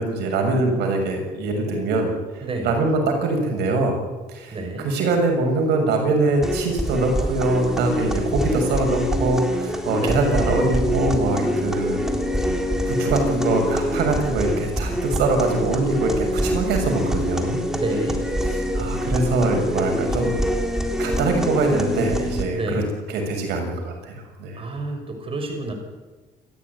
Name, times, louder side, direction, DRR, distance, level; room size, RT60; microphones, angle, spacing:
voice 1, 0.0-4.0 4.3-12.1 12.9-17.6 18.7-20.4 21.0-22.8 23.1-24.6, right 2 dB, 80° right, 3 dB, 6.9 m, -23 dB
voice 2, 2.4-2.7 4.5-4.9 10.0-10.2 17.7-18.2 22.5-22.9 24.6-25.7, right 2 dB, 35° right, 4 dB, 6.1 m, -29 dB
sound 1, 6.4-22.4, equal, 5° right, 3.8 m, -25 dB
28.5 x 14.0 x 9.8 m, 1.2 s
cardioid pair, 110°, 17 cm